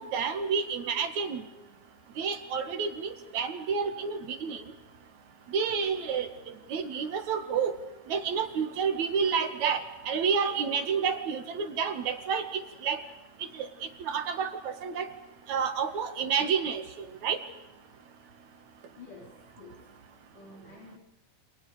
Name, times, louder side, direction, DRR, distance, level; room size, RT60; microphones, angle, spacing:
voice 1, 0.0-1.4 2.2-4.6 5.5-6.3 6.7-7.7 8.1-12.5 12.8-13.0 13.6-13.7 14.1-15.1 15.5-16.8 17.2-17.4, right 6 dB, 60° right, 8 dB, 3.1 m, -29 dB
voice 2, 18.9-19.9 20.3-21.0, left 4 dB, 70° left, -2 dB, 5.6 m, -50 dB
29.0 x 28.0 x 5.0 m, 1.1 s
omnidirectional pair, 3.8 m